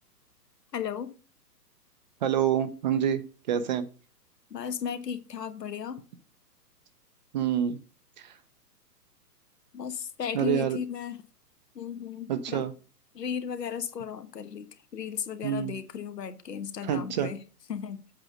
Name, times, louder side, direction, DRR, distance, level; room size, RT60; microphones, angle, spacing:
voice 1, 0.7-1.1 4.5-6.0 9.7-11.2 11.7-12.6 13.1-17.4 17.7-18.0, left 7 dB, 80° left, 1.3 m, -35 dB
voice 2, 2.2-3.2 3.5-3.9 7.3-7.8 8.2-8.3 10.3-10.8 12.3-12.7 15.4-15.8 16.8-17.3, right 9 dB, 30° right, 0.5 m, -27 dB
7.9 x 3.8 x 6.4 m
hypercardioid pair, 130°, 48 cm